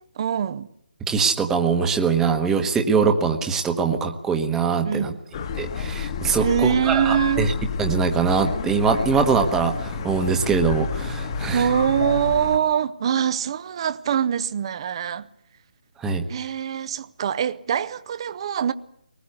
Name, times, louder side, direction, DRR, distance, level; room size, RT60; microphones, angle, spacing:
voice 1, 0.1-0.7 4.8-5.2 6.4-7.5 11.5-15.3 16.3-18.7, right 8 dB, 35° right, 0.8 m, -23 dB
voice 2, 1.1-5.1 5.6-7.5 7.8-11.7 16.0-16.3, right 5 dB, 10° right, 1.2 m, -22 dB
sound 1, 5.3-12.6, left 5 dB, 30° left, 1.5 m, -30 dB
22.5 x 20.0 x 8.2 m
figure-of-eight pair, 145°, 5 cm